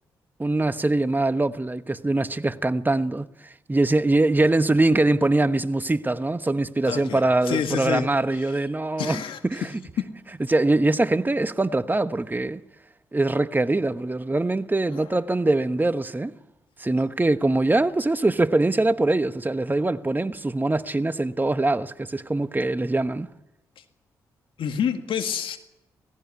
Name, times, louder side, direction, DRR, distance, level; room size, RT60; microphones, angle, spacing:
voice 1, 0.4-3.3 3.7-9.7 10.5-12.6 13.1-16.3 16.8-23.3, right 2 dB, 20° right, 1.2 m, -23 dB
voice 2, 6.9-7.2 7.5-8.1 9.0-9.4 10.0-10.1 24.6-25.6, left 7 dB, 70° left, 1.9 m, -27 dB
18.0 x 16.0 x 9.5 m
supercardioid pair, 45°, 9 cm